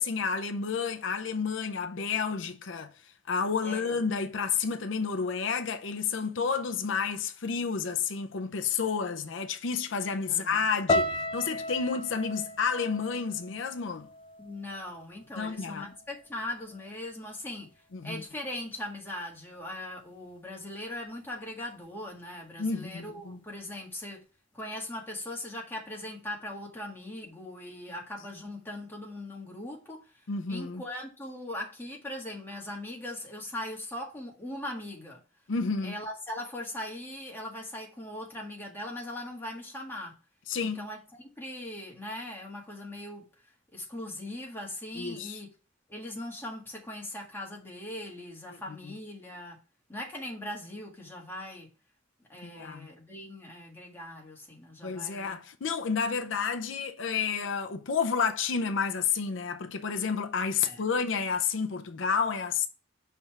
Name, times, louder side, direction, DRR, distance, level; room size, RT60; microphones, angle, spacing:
voice 1, 0.0-2.9 3.3-14.1 15.4-15.9 17.9-18.2 22.6-23.4 30.3-30.8 35.5-36.0 40.5-40.9 45.0-45.4 48.8-48.9 52.4-52.9 54.8-62.7, left 5 dB, 85° left, 0.6 m, -30 dB
voice 2, 3.6-4.0 10.3-10.6 14.4-17.7 18.0-24.2 24.5-35.2 35.8-40.2 40.6-43.3 43.7-45.5 45.9-49.6 49.9-51.7 52.3-55.3 60.6-60.8, left 1 dB, 10° left, 1.7 m, -40 dB
sound 1, 10.9-15.1 15.4-16.1 16.7-17.0, left 2 dB, 30° left, 0.6 m, -34 dB
5.5 x 3.4 x 5.8 m
head